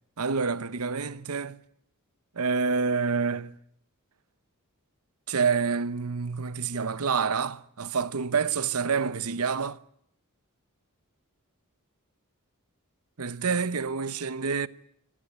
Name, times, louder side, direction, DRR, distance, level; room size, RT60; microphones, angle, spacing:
voice 1, 0.2-1.6 2.3-3.6 5.3-9.8 13.2-14.7, right 5 dB, 75° right, 0.9 m, -27 dB
25.5 x 17.5 x 10.0 m
head